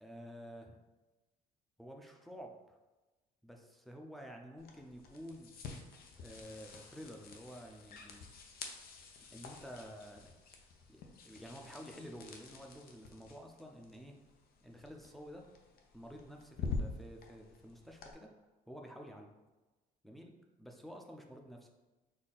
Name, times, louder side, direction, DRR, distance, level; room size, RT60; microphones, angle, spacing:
voice 1, 0.0-0.8 1.8-2.8 3.4-5.5 6.2-8.3 9.3-10.4 10.9-14.2 14.6-15.5 15.9-18.3 18.7-19.3 20.0-21.7, equal, ahead, 2 dB, 0.6 m, -50 dB
sound 1, 4.6-18.1, left 4 dB, 65° left, 0.7 m, -47 dB
4.2 x 2.8 x 4.0 m, 1.1 s
cardioid pair, 110°, 17 cm